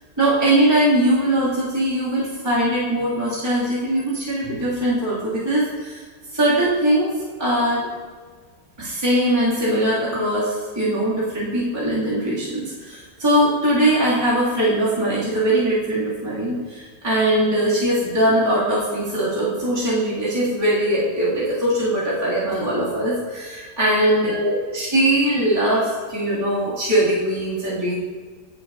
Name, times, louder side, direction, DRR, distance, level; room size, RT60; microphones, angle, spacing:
voice 1, 0.2-6.0 6.3-7.1 7.4-7.9 8.8-28.0, right 1 dB, 15° right, -11 dB, 2.3 m, -21 dB
16.5 x 5.7 x 2.6 m, 1.5 s
omnidirectional pair, 1.9 m